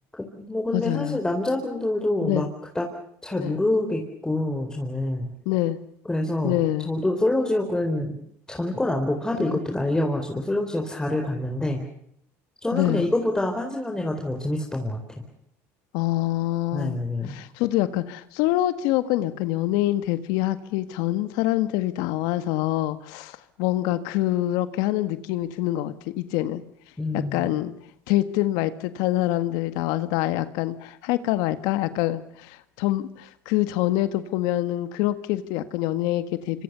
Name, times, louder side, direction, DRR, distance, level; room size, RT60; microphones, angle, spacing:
voice 1, 0.2-2.5 2.7-2.9 3.2-5.3 6.0-6.6 6.8-8.2 8.5-11.8 12.6-15.2 16.7-17.3 27.0-27.5, left 1 dB, 10° left, 2 dB, 4.2 m, -26 dB
voice 2, 0.7-1.2 2.2-2.5 3.3-3.6 5.4-5.8 6.4-6.9 9.4-9.6 12.7-13.1 15.9-17.0 17.3-26.6 27.1-27.7 28.1-36.6, left 15 dB, 75° left, 12 dB, 1.6 m, -25 dB
26.0 x 25.5 x 6.9 m, 0.72 s
supercardioid pair, 100°, 7 cm